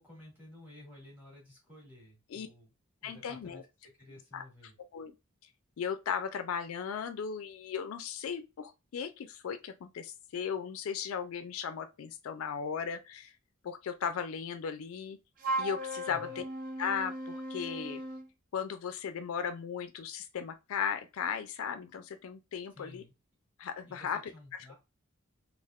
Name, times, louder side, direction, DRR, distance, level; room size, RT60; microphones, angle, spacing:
voice 1, 0.0-2.7 3.0-3.7 4.0-4.8 16.1-16.4 22.7-23.1 23.9-24.7, left 1 dB, 10° right, 1.6 m, -53 dB
voice 2, 3.0-3.6 4.3-4.4 4.9-5.1 5.8-13.3 13.6-15.2 15.6-16.4 16.8-18.0 18.5-23.0 23.6-24.3, left 7 dB, 70° left, 0.4 m, -36 dB
Wind instrument woodwind instrument, 15.4-18.3, right 1 dB, 40° right, 0.5 m, -37 dB
3.4 x 2.4 x 2.3 m
head